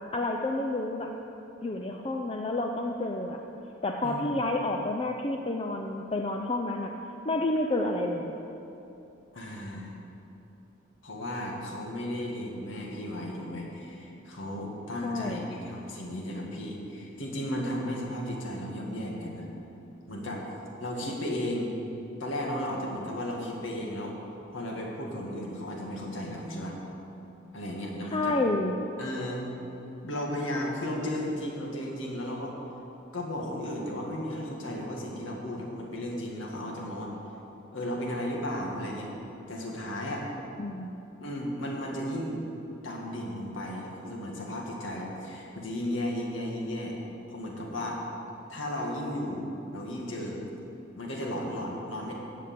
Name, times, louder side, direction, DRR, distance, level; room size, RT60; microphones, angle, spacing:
voice 1, 0.1-1.1 1.6-3.4 3.8-6.9 7.2-8.3 15.0-15.6 28.1-28.9 40.6-41.0, left 2 dB, 25° left, 2 dB, 0.5 m, -30 dB
voice 2, 4.0-4.4 9.3-9.9 11.0-19.5 20.1-20.4 20.8-21.7 22.2-24.1 24.5-26.7 27.5-28.4 29.0-29.5 30.0-32.6 33.1-37.1 37.7-39.1 39.5-40.3 41.2-42.4 42.8-46.9 47.3-48.0 48.5-50.4 51.0-52.1, left 1 dB, 75° left, -1 dB, 2.1 m, -34 dB
14.0 x 5.1 x 8.5 m, 3.0 s
head